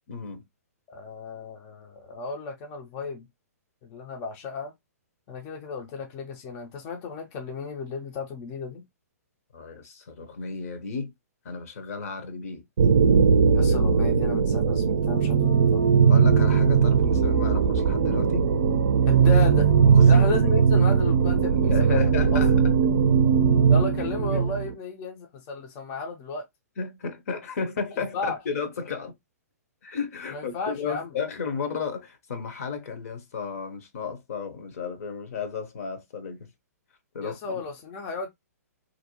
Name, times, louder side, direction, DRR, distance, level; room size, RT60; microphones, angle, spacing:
voice 1, 0.1-0.4 9.5-11.1 11.4-12.6 16.1-18.5 19.9-20.3 20.5-20.6 21.6-22.5 24.3-24.4 26.8-29.2 29.8-36.5 37.1-37.6, left 5 dB, 65° left, 0.7 m, -33 dB
voice 2, 0.9-3.3 3.8-4.7 5.3-8.8 13.5-15.9 19.1-19.7 20.1-22.4 23.7-26.5 28.1-28.4 30.3-31.1 37.2-38.3, left 4 dB, 30° left, 0.4 m, -34 dB
sound 1, 12.8-24.7, right 6 dB, 70° right, 0.4 m, -19 dB
2.6 x 2.1 x 2.8 m
hypercardioid pair, 135°, 9 cm